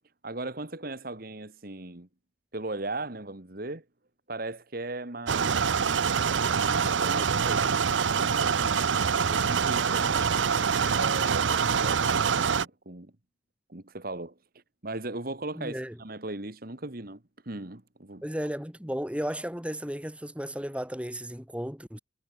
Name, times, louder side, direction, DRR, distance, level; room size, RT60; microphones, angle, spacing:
voice 1, 0.2-2.1 2.5-3.8 4.3-5.6 6.5-8.9 9.3-10.4 10.9-13.1 13.7-14.3 14.8-18.2, right 2 dB, 50° right, 1.9 m, -38 dB
sound 1, 5.3-12.7, right 6 dB, 80° right, 0.7 m, -25 dB
voice 2, 15.5-16.0 18.2-22.0, equal, 5° right, 2.7 m, -34 dB
head